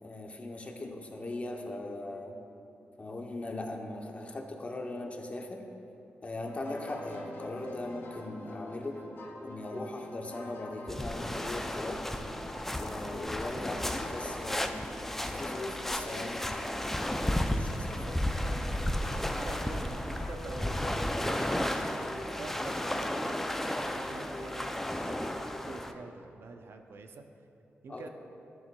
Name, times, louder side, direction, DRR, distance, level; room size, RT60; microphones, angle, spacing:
voice 1, 0.0-2.4 3.0-5.7 6.2-9.1 9.4-12.1 12.8-14.8 15.2-18.1 27.9-28.1, left 2 dB, 30° left, 3 dB, 0.7 m, -39 dB
sound 1, 6.4-26.0, left 2 dB, 65° left, 1.0 m, -46 dB
sound 2, 10.9-25.9, left 1 dB, 5° left, 0.4 m, -33 dB
voice 2, 19.3-27.2 27.8-28.1, right 3 dB, 65° right, 6 dB, 0.5 m, -46 dB
12.5 x 6.8 x 2.2 m, 2.9 s
wide cardioid pair, 110°, 4 cm